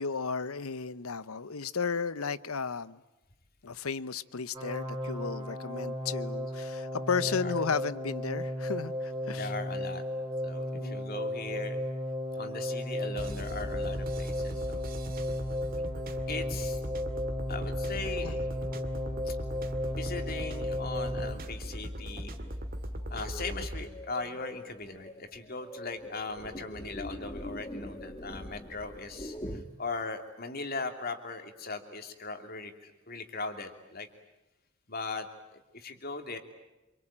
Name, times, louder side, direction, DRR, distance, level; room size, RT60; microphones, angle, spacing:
voice 1, 0.0-3.0 3.6-9.5 10.7-11.1 18.2-18.4, left 5 dB, 85° left, 0.9 m, -34 dB
sound 1, 4.5-21.3, left 1 dB, 20° right, 4.8 m, -35 dB
voice 2, 7.2-7.6 9.3-10.0 10.4-11.8 12.3-15.0 16.3-16.8 17.5-18.3 19.2-19.4 19.9-22.4 23.1-34.1 34.9-35.3 35.5-36.4, left 3 dB, 45° left, 2.9 m, -39 dB
sound 2, 13.2-23.9, equal, 45° right, 2.2 m, -38 dB
sound 3, 16.5-29.6, left 1 dB, 20° left, 1.9 m, -46 dB
27.5 x 24.5 x 8.9 m
head